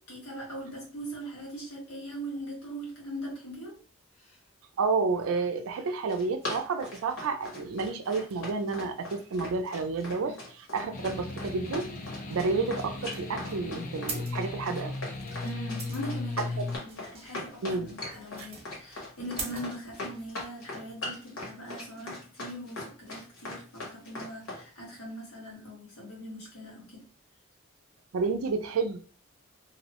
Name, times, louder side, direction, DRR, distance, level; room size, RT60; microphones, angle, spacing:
voice 1, 0.1-3.7 4.2-4.4 10.3-10.4 15.4-16.5 16.8-27.1, right 1 dB, 90° left, -3 dB, 1.3 m, -41 dB
voice 2, 4.8-11.9 12.3-15.0 15.3-15.4 16.6-16.7 17.6-17.9 18.4-18.5 28.1-29.0, right 4 dB, 75° right, 6 dB, 0.4 m, -30 dB
Run, 5.9-24.6, left 2 dB, 65° left, 1.1 m, -39 dB
sound 1, 10.9-16.8, left 3 dB, 40° left, 0.4 m, -37 dB
sound 2, 12.3-20.5, right 4 dB, 30° right, 0.6 m, -43 dB
2.6 x 2.0 x 2.8 m, 0.39 s
head